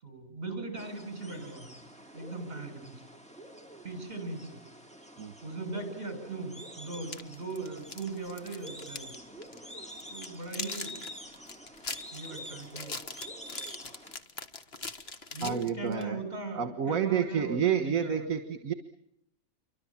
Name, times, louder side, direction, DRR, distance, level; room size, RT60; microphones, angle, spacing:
voice 1, 0.0-1.8 2.1-3.1 3.8-4.6 5.4-9.1 10.1-11.0 12.1-13.0 15.3-18.3, right 3 dB, 40° right, 8 dB, 7.4 m, -39 dB
sound 1, 0.8-14.2, equal, 5° left, 4.0 m, -47 dB
sound 2, 6.9-9.2 9.4-9.6 10.0-16.1, left 4 dB, 45° left, 1.8 m, -41 dB
voice 2, 15.4-16.2 16.6-18.7, right 8 dB, 70° right, 9 dB, 1.8 m, -29 dB
28.0 x 24.5 x 7.4 m, 0.73 s
omnidirectional pair, 1.5 m